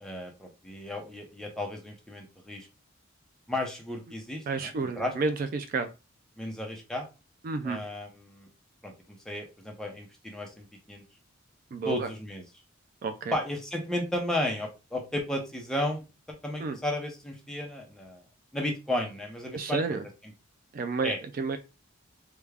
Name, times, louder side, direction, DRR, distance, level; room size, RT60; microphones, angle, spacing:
voice 1, 0.0-2.7 3.5-5.1 6.4-7.1 7.6-8.5 8.8-11.0 11.8-12.4 13.3-18.2 18.5-20.0 21.0-21.2, left 1 dB, 5° left, 1 dB, 0.6 m, -34 dB
voice 2, 4.5-5.9 7.4-7.8 11.7-12.1 13.0-13.3 16.6-16.8 19.5-20.0 20.7-21.6, right 4 dB, 45° right, 8 dB, 0.3 m, -31 dB
3.4 x 2.2 x 3.3 m, 0.29 s
head